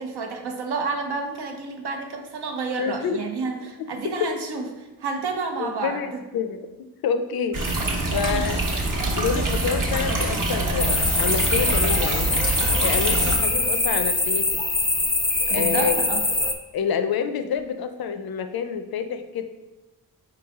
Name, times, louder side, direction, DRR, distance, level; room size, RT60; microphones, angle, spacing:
voice 1, 0.0-6.2 8.1-8.5 15.5-16.2, right 4 dB, 80° right, 4 dB, 0.7 m, -30 dB
voice 2, 2.8-3.2 5.6-6.1 6.3-6.7 7.0-7.6 8.1-8.6 9.2-12.3 12.8-14.5 15.5-16.0 16.7-19.4, left 7 dB, 65° left, 9 dB, 0.5 m, -27 dB
sound 1, 7.5-13.4, right 2 dB, 55° right, 1.0 m, -25 dB
sound 2, 10.8-16.5, left 2 dB, 10° left, 0.3 m, -23 dB
4.7 x 3.2 x 3.5 m, 1.1 s
cardioid pair, 75°, 39 cm